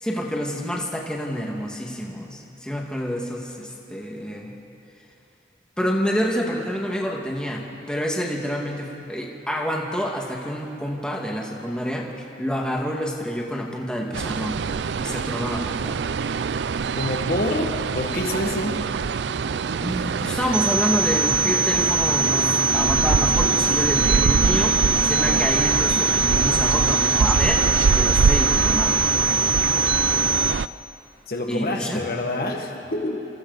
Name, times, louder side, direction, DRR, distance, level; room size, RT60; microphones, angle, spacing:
voice 1, 0.0-4.5 5.8-12.1 12.4-14.6 15.0-16.1 19.8-29.1 31.5-32.0, equal, 5° left, -1 dB, 1.9 m, -28 dB
sound 1, 14.1-30.7, right 5 dB, 75° right, 0.4 m, -24 dB
voice 2, 17.0-18.8 31.3-33.3, left 1 dB, 55° left, 3 dB, 1.7 m, -27 dB
sound 2, 20.5-30.5, right 4 dB, 25° right, 0.7 m, -23 dB
28.0 x 27.5 x 4.1 m, 2.8 s
head